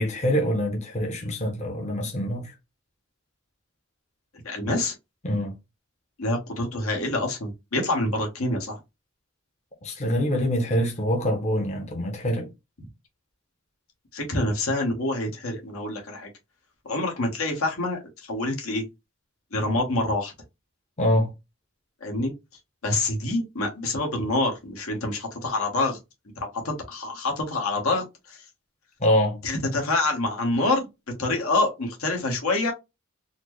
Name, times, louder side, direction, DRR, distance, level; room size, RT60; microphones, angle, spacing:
voice 1, 0.0-2.5 5.2-5.6 9.8-12.5 21.0-21.3 29.0-29.4, equal, 35° left, 0.7 m, -25 dB
voice 2, 4.4-4.9 6.2-8.8 14.1-16.3 16.8-18.8 19.5-20.3 22.0-22.3 22.8-26.0 26.4-28.4 29.4-30.9 31.2-32.7, left 2 dB, 80° left, 1.2 m, -26 dB
4.2 x 2.1 x 3.0 m
head